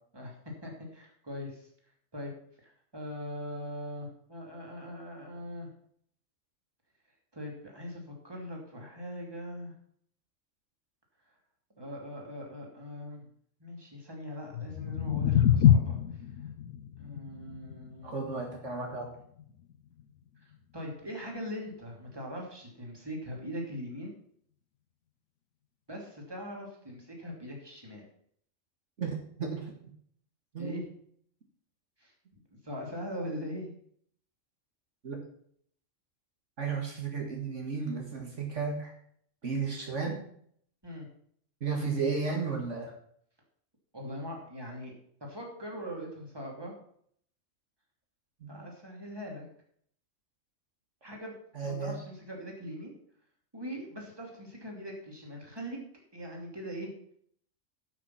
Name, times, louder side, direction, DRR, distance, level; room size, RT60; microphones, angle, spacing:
voice 1, 0.1-1.7 2.1-2.3 2.6-5.7 7.3-9.7 11.8-13.3 13.6-16.2 17.0-18.3 20.4-24.1 25.9-28.1 30.6-30.9 32.0-32.1 32.6-33.7 40.8-41.1 43.9-44.9 45.2-46.7 48.5-49.5 51.0-51.3 51.6-52.9 53.5-55.8 56.1-56.9, equal, 20° right, 0 dB, 2.8 m, -41 dB
sound 1, 14.4-20.6, left 10 dB, 90° left, 1.1 m, -28 dB
voice 2, 18.0-19.1 29.0-29.7 30.5-30.9 35.0-35.2 36.6-38.9 39.4-40.2 41.6-42.9 48.4-48.5 51.5-52.0, right 5 dB, 65° right, 1 dB, 2.1 m, -33 dB
12.0 x 6.2 x 5.7 m, 0.63 s
omnidirectional pair, 1.3 m